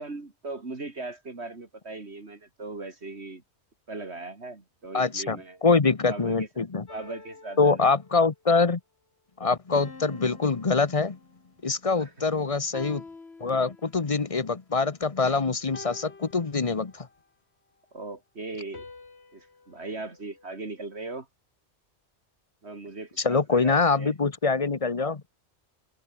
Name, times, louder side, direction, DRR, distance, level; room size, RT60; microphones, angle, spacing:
voice 1, 0.0-3.4 3.9-5.6 6.1-7.7 11.9-12.4 17.9-18.9 19.3-21.3 22.6-24.1, right 3 dB, 70° right, 3.2 m, -39 dB
voice 2, 4.9-6.8 7.6-8.8 9.4-11.2 11.6-13.0 13.4-17.1 23.2-25.2, left 4 dB, 30° left, 1.0 m, -24 dB
sound 1, 6.9-8.4 9.7-11.6 12.7-14.2 15.7-17.2 18.7-21.0, left 3 dB, 65° left, 2.7 m, -48 dB
omnidirectional pair, 1.2 m